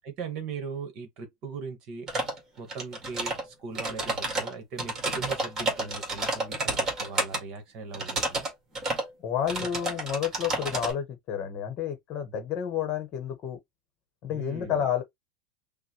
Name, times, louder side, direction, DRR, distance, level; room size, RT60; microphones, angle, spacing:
voice 1, 0.0-2.1 2.6-8.5 14.3-14.8, right 5 dB, 35° right, 1.3 m, -39 dB
sound 1, 2.1-2.4 2.7-3.4 3.7-7.4 7.9-8.5 8.7-9.1 9.5-10.9, right 2 dB, 20° right, 1.8 m, -30 dB
voice 2, 9.2-13.6 14.2-15.0, left 9 dB, 35° left, 1.1 m, -30 dB
5.9 x 2.2 x 2.9 m
supercardioid pair, 165°, 2 cm